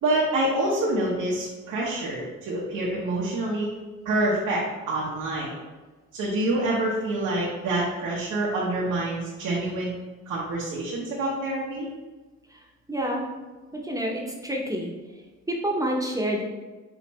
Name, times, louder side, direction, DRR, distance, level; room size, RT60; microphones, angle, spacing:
voice 1, 0.0-3.7 4.0-5.5 6.1-9.9 10.3-11.9, right 1 dB, 80° right, -5 dB, 0.9 m, -26 dB
voice 2, 12.9-13.3 13.7-14.9 15.5-16.4, right 1 dB, 10° right, -1 dB, 0.7 m, -28 dB
5.0 x 2.5 x 3.1 m, 1.3 s
cardioid pair, 90°, 30 cm